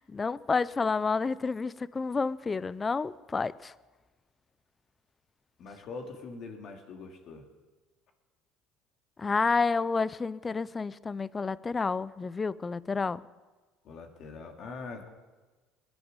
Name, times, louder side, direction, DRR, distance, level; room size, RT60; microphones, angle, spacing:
voice 1, 0.0-3.7 9.2-13.2, left 4 dB, 25° left, 19 dB, 0.5 m, -30 dB
voice 2, 5.6-7.5 13.8-15.1, left 4 dB, 55° left, 3 dB, 2.5 m, -43 dB
21.0 x 9.6 x 5.3 m, 1.3 s
supercardioid pair, 90°, 0 cm